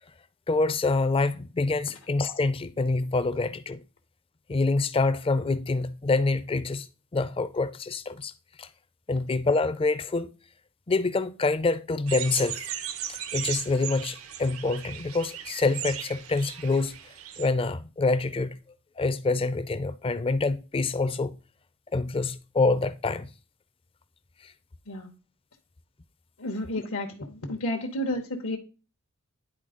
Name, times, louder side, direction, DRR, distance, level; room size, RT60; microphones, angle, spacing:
voice 1, 0.5-3.8 4.5-6.9 7.1-8.3 8.6-8.7 9.1-10.3 10.9-12.6 13.3-16.9 17.4-18.6 19.0-21.4 21.9-23.3 24.4-24.5, left 3 dB, 25° left, 0.4 m, -26 dB
sound 1, 12.1-17.5, right 10 dB, 75° right, 0.7 m, -37 dB
voice 2, 26.4-28.6, left 1 dB, 75° left, 1.0 m, -31 dB
10.0 x 4.2 x 3.8 m
head